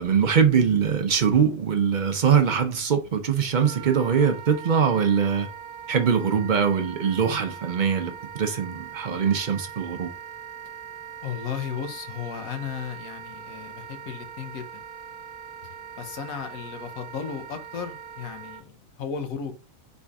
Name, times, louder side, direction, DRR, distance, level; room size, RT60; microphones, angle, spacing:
voice 1, 0.0-5.5 5.9-10.1, right 7 dB, 50° right, 0.6 m, -22 dB
Wind instrument woodwind instrument, 3.6-18.6, right 8 dB, 65° right, 0.9 m, -41 dB
voice 2, 11.2-14.8 16.0-19.5, left 7 dB, 85° left, 1.3 m, -35 dB
4.2 x 3.5 x 3.5 m
omnidirectional pair, 1.4 m